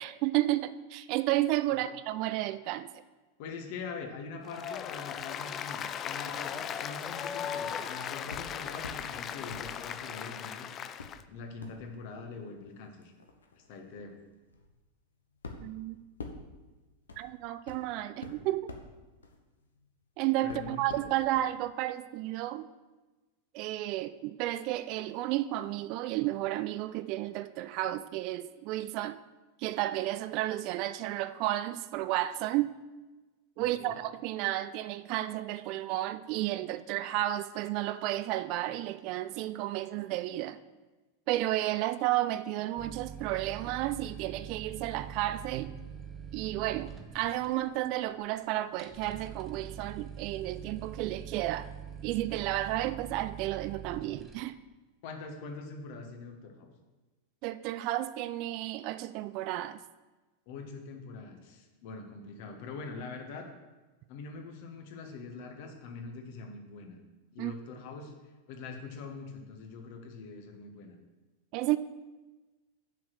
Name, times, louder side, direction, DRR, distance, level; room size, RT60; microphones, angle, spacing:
voice 1, 0.0-2.9 15.6-16.0 17.2-18.7 20.2-22.7 23.5-29.2 29.6-32.7 33.6-40.6 41.3-45.7 46.3-51.7 52.0-54.6 57.4-59.8 67.4-67.5 71.5-71.8, right 15 dB, 45° right, 0.4 m, -32 dB
voice 2, 3.4-10.7 11.3-13.1 13.5-14.2 20.4-21.1 33.6-34.0 55.0-56.7 60.5-63.5 64.1-67.0 67.3-68.1 68.5-70.9, left 4 dB, 50° left, 1.7 m, -43 dB
Applause, 4.4-11.2, left 8 dB, 30° left, 0.5 m, -37 dB
sound 1, 8.3-9.1 9.5-10.5 11.0-20.1 20.5-21.5 21.8-21.9, left 3 dB, 70° left, 1.1 m, -48 dB
sound 2, 42.8-54.4, right 7 dB, 20° right, 1.0 m, -44 dB
7.3 x 5.9 x 7.8 m
figure-of-eight pair, 90°, 0 cm